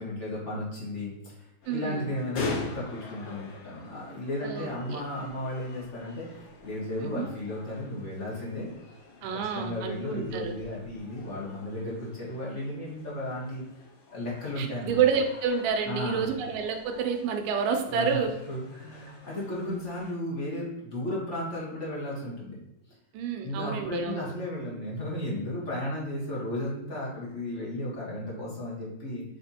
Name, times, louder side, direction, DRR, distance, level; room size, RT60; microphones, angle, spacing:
voice 1, 0.0-8.7 9.5-13.6 14.1-15.0 15.9-16.3 17.9-18.2 18.5-22.6 23.4-29.2, left 1 dB, 30° left, -5 dB, 1.5 m, -34 dB
sound 1, 1.6-20.1, left 3 dB, 80° left, 3.8 m, -44 dB
voice 2, 1.7-2.1 4.4-5.0 7.0-7.3 9.2-10.5 14.6-18.4 23.1-24.3, right 6 dB, 80° right, 4 dB, 2.3 m, -29 dB
7.3 x 3.5 x 4.2 m, 0.86 s
omnidirectional pair, 4.0 m